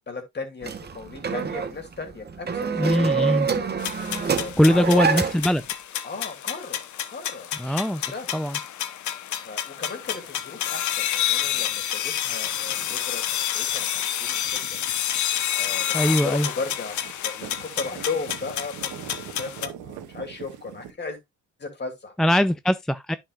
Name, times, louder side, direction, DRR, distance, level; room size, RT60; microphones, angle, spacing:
voice 1, 0.1-3.3 4.2-5.2 6.0-8.4 9.4-14.8 15.5-17.0 17.2-18.9 19.3-21.2 21.6-22.3, left 4 dB, 35° left, 2.6 m, -36 dB
sound 1, 0.6-5.6, right 6 dB, 35° right, 1.1 m, -26 dB
voice 2, 2.8-3.5 4.6-5.6 7.6-8.0 8.3-8.6 15.9-16.5 22.2-23.2, equal, ahead, 0.3 m, -21 dB
sound 2, 3.8-19.7, left 11 dB, 75° left, 0.9 m, -29 dB
sound 3, 10.1-20.9, right 9 dB, 80° right, 1.2 m, -45 dB
10.0 x 5.7 x 2.4 m
cardioid pair, 90°, 30 cm